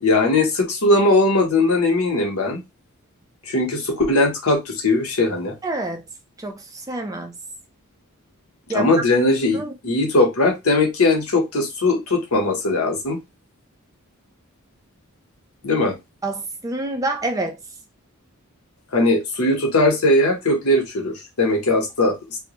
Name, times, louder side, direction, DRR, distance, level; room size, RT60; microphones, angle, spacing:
voice 1, 0.0-2.6 3.5-5.6 8.7-13.2 15.6-16.0 18.9-22.4, left 2 dB, 85° left, 0.9 m, -19 dB
voice 2, 5.6-6.0 6.4-7.3 8.7-8.9 9.5-9.7 16.2-17.6, right 2 dB, 15° right, 0.3 m, -27 dB
2.2 x 2.0 x 2.8 m
head